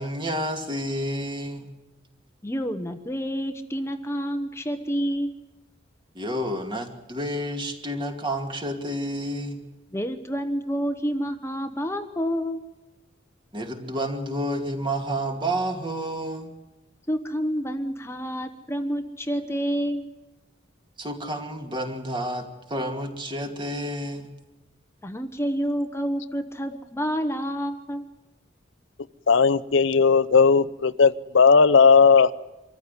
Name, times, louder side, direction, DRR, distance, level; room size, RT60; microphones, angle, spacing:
voice 1, 0.0-1.7 6.1-9.6 13.5-16.5 21.0-24.3, right 1 dB, 25° right, 4 dB, 2.5 m, -30 dB
voice 2, 2.4-5.4 9.9-12.6 17.1-20.1 25.0-28.0, equal, 15° left, 8 dB, 1.0 m, -28 dB
voice 3, 29.3-32.3, left 5 dB, 80° left, 12 dB, 0.7 m, -16 dB
25.0 x 14.5 x 9.8 m, 1.0 s
head